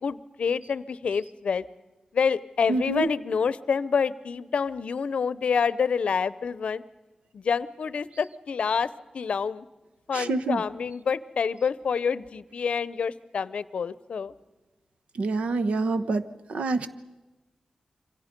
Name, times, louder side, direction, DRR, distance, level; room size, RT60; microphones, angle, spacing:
voice 1, 0.0-1.7 2.1-6.8 7.3-9.7 10.1-14.3, left 6 dB, 75° left, 17 dB, 0.6 m, -27 dB
voice 2, 2.7-3.1 10.1-10.6 15.2-16.2 16.5-16.9, right 3 dB, 80° right, 10 dB, 1.1 m, -26 dB
28.0 x 25.0 x 5.2 m, 1.1 s
wide cardioid pair, 120°, 2 cm